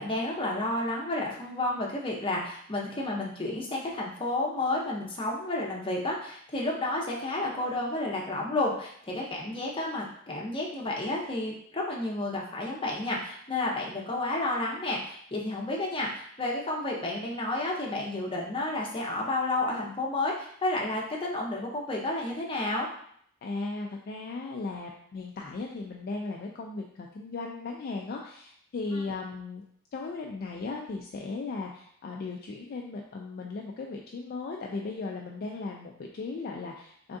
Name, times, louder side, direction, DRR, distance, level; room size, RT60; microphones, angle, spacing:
voice 1, 0.0-22.9 28.9-29.0, left 2 dB, 25° left, -2 dB, 0.7 m, -31 dB
voice 2, 23.4-29.6 29.9-37.2, left 3 dB, 45° left, 0 dB, 0.3 m, -37 dB
3.5 x 3.4 x 2.6 m, 0.65 s
head